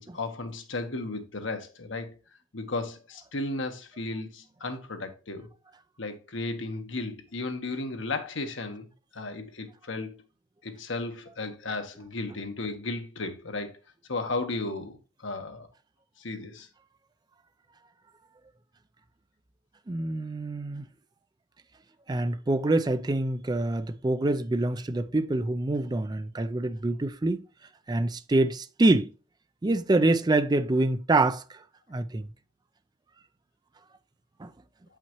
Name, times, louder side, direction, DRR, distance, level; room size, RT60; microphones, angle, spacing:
voice 1, 0.0-2.1 2.5-5.5 6.0-8.9 9.1-10.1 10.6-13.7 14.1-15.7 16.2-16.7, left 3 dB, 75° left, 1.3 m, -34 dB
voice 2, 19.9-20.9 22.1-27.4 27.9-29.1 29.6-31.6 31.9-32.3 34.4-34.5, right 2 dB, 20° right, 0.4 m, -26 dB
8.3 x 5.7 x 3.0 m
head